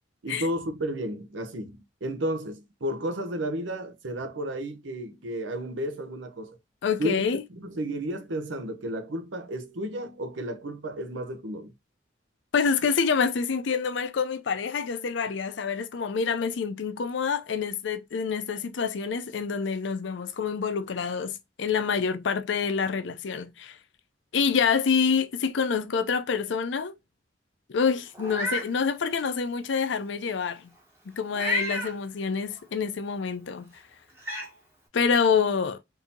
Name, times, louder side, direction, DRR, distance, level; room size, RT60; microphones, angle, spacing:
voice 1, 0.2-6.6 7.0-7.2 7.5-11.7, equal, 85° right, 0.7 m, -32 dB
voice 2, 6.8-7.4 12.5-23.8 24.3-26.9 27.7-30.7 31.1-33.7 34.9-35.8, left 6 dB, 75° left, 0.5 m, -27 dB
Meow, 28.1-28.7 29.2-29.3 31.3-31.9 33.5-33.6 34.2-34.5, left 1 dB, 15° right, 0.9 m, -30 dB
3.7 x 2.7 x 2.7 m
head